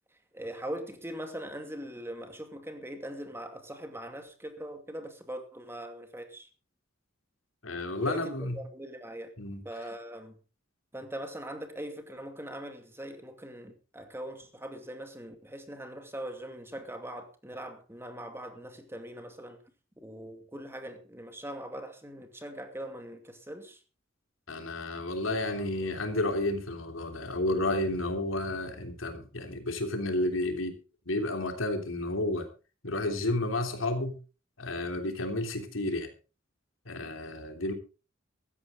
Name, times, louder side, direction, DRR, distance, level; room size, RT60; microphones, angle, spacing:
voice 1, 0.1-6.5 8.0-9.3 9.6-10.4 10.9-19.6 20.0-23.8, right 1 dB, 10° right, 2.4 m, -41 dB
voice 2, 7.6-8.6 9.4-9.6 24.5-30.8 31.0-32.5 32.8-34.1 34.6-36.1 36.8-37.7, left 2 dB, 90° left, 3.3 m, -31 dB
16.0 x 13.5 x 3.9 m
head